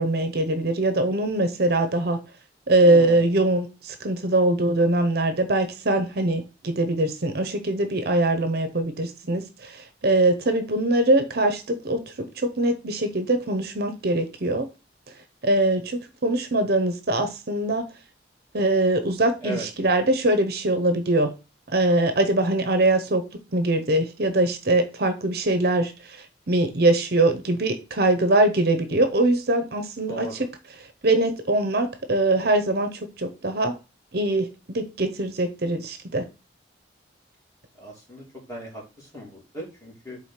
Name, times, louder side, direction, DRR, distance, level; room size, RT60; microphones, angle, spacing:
voice 1, 0.0-2.2 2.7-14.7 15.4-17.9 18.5-21.3 21.7-23.2 23.5-30.3 31.0-33.7 34.1-36.2, right 2 dB, 55° right, 0.8 m, -22 dB
voice 2, 2.8-3.3 19.4-19.7 30.1-30.3 37.8-40.2, right 2 dB, 15° left, 2.8 m, -37 dB
4.9 x 3.7 x 5.7 m
head